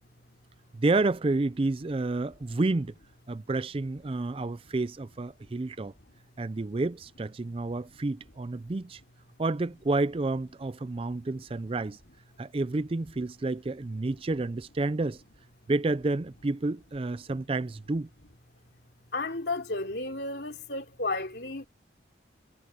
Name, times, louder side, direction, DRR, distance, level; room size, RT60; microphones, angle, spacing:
voice 1, 0.7-2.9 3.3-5.9 6.4-9.0 9.4-12.0 12.4-15.2 15.7-18.1, right 2 dB, 30° right, 0.4 m, -30 dB
voice 2, 19.1-21.7, left 2 dB, 60° left, 3.5 m, -33 dB
head